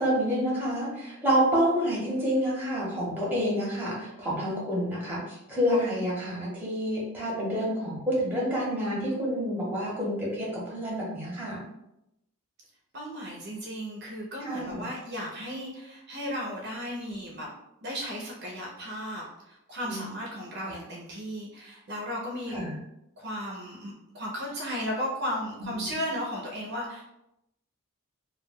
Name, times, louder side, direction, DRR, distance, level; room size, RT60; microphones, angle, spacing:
voice 1, 0.0-11.6 14.4-14.8 19.9-20.1 20.7-20.8 22.5-22.8 25.6-26.0, equal, 10° right, -5 dB, 0.8 m, -28 dB
voice 2, 12.9-17.5 17.8-22.6 23.2-27.0, equal, 50° right, -2 dB, 0.5 m, -35 dB
2.3 x 2.2 x 3.4 m, 0.85 s
head